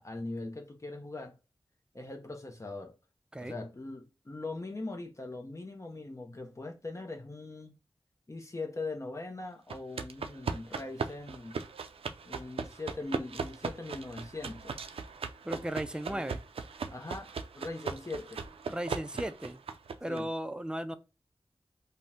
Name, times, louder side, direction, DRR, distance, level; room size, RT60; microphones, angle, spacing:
voice 1, 0.0-1.3 1.9-3.0 3.4-7.8 8.3-11.6 12.2-14.7 16.1-16.3 16.9-18.4 20.1-20.3, left 2 dB, 30° left, 0.7 m, -41 dB
sound 1, 9.7-20.2, right 5 dB, 80° right, 0.4 m, -39 dB
voice 2, 15.4-16.4 18.7-19.6 20.0-21.0, right 1 dB, 10° right, 0.4 m, -36 dB
2.7 x 2.1 x 3.4 m
cardioid pair, 40°, 10 cm